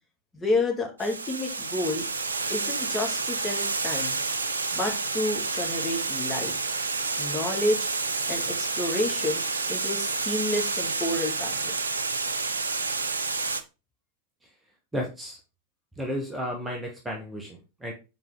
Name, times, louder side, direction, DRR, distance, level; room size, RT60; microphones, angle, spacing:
voice 1, 0.3-2.0 2.5-4.2 4.7-6.6 7.2-7.9 8.3-9.4 9.7-11.7, left 2 dB, 15° left, 0 dB, 2.3 m, -30 dB
Water, 1.0-13.6, right 4 dB, 75° right, 0.6 m, -29 dB
voice 2, 14.9-15.4 16.0-17.9, equal, 10° right, 0 dB, 1.3 m, -33 dB
7.3 x 4.5 x 3.6 m, 0.30 s
figure-of-eight pair, 90°, 0 cm